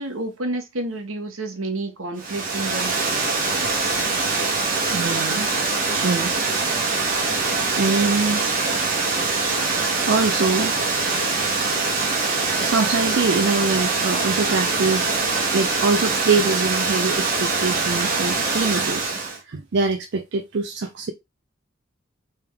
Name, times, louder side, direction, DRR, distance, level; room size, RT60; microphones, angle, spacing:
voice 1, 0.0-3.0, right 2 dB, 80° right, 1.1 m, -29 dB
Water, 2.2-19.4, right 3 dB, 45° right, 1.1 m, -23 dB
voice 2, 4.9-5.5 5.9-6.5 7.2-8.5 10.0-10.7 12.6-19.2 19.4-21.1, right 4 dB, 60° right, 0.5 m, -24 dB
3.5 x 3.4 x 3.4 m
head